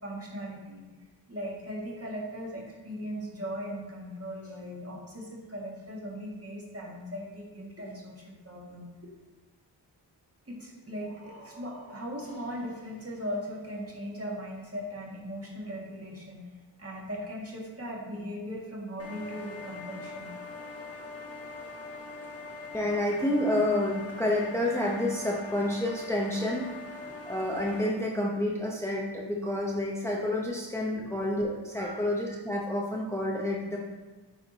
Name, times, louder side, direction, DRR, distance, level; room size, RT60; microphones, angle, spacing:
voice 1, 0.0-0.8 1.3-8.9 10.5-20.3 30.9-31.1 31.8-32.0, equal, 30° right, -3 dB, 2.0 m, -39 dB
sound 1, 19.0-27.9, left 3 dB, 35° left, 1.5 m, -42 dB
voice 2, 22.7-26.6 27.3-33.8, left 1 dB, 5° left, -3 dB, 1.0 m, -29 dB
9.2 x 3.6 x 4.1 m, 1.2 s
cardioid pair, 50°, 43 cm